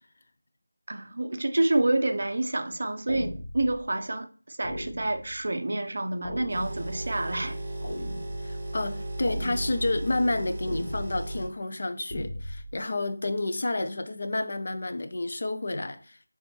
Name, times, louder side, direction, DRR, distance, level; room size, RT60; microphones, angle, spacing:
voice 1, 0.9-7.6, right 2 dB, 40° right, 0.4 m, -28 dB
sound 1, 3.1-3.8 4.6-5.4 6.2-7.1 7.8-8.6 9.3-10.0 10.6-11.3 12.1-12.7, left 1 dB, 20° left, 0.8 m, -38 dB
sound 2, 6.5-11.5, right 1 dB, 15° right, 0.7 m, -35 dB
voice 2, 8.4-16.3, left 2 dB, 35° left, 0.3 m, -30 dB
3.2 x 2.9 x 4.4 m
figure-of-eight pair, 180°, 0 cm